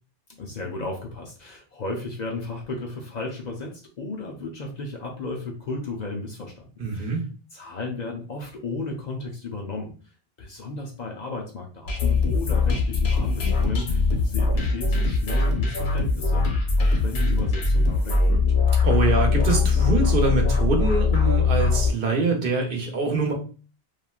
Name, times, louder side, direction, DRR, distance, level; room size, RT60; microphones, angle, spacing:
voice 1, 0.3-6.6 6.9-7.1 7.5-9.9 10.4-18.4, left 2 dB, 50° left, 0 dB, 0.6 m, -34 dB
voice 2, 6.8-7.2 18.8-23.3, right 3 dB, 60° right, 2 dB, 0.8 m, -24 dB
sound 1, 11.9-21.9, left 4 dB, 80° left, 1.0 m, -21 dB
3.1 x 2.4 x 2.3 m, 0.37 s
omnidirectional pair, 1.1 m